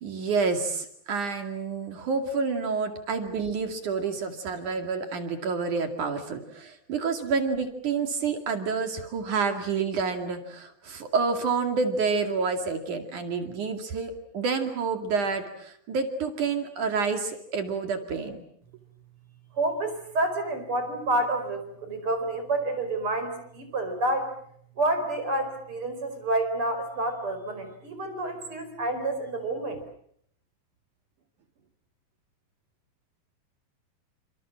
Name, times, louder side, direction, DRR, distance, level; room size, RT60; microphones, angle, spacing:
voice 1, 0.0-18.4, right 5 dB, 55° right, 6 dB, 3.6 m, -28 dB
voice 2, 19.5-24.3 24.8-29.8, right 2 dB, 35° right, 7 dB, 5.5 m, -29 dB
29.5 x 27.0 x 7.5 m, 0.67 s
omnidirectional pair, 4.3 m